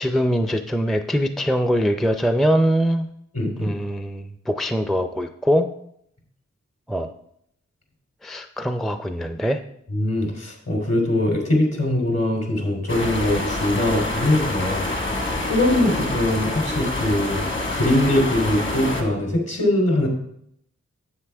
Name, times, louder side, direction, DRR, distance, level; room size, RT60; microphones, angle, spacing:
voice 1, 0.0-3.1 3.6-5.7 6.9-7.1 8.2-9.6, equal, ahead, 8 dB, 0.4 m, -22 dB
voice 2, 3.3-3.7 9.9-14.9 15.4-17.4 17.7-20.1, left 1 dB, 55° left, 1 dB, 2.8 m, -22 dB
sound 1, 12.9-19.0, left 2 dB, 40° left, 1.6 m, -26 dB
9.5 x 7.8 x 3.4 m, 0.72 s
wide cardioid pair, 85°, 30 cm